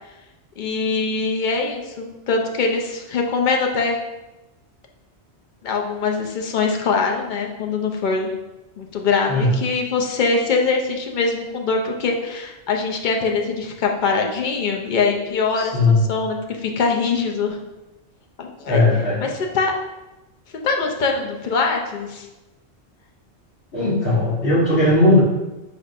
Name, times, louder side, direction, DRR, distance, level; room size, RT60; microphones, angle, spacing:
voice 1, 0.6-4.0 5.6-8.3 8.8-17.6 18.4-18.8 19.2-19.7 20.6-22.3, left 4 dB, 55° left, 1 dB, 0.6 m, -23 dB
voice 2, 15.5-16.0 18.7-19.2 23.7-25.2, left 2 dB, 70° left, -10 dB, 1.3 m, -17 dB
5.2 x 3.4 x 2.5 m, 1.0 s
omnidirectional pair, 1.2 m